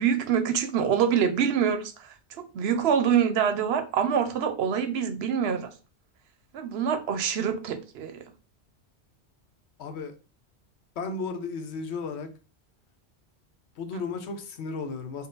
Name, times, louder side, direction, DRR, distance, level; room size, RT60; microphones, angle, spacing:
voice 1, 0.0-2.1 2.4-5.7 6.5-8.2 13.9-14.0, right 7 dB, 70° right, 0.8 m, -25 dB
voice 2, 9.8-10.1 11.0-12.3 13.8-15.3, left 4 dB, 75° left, 0.9 m, -34 dB
3.8 x 2.2 x 3.8 m
omnidirectional pair, 1.1 m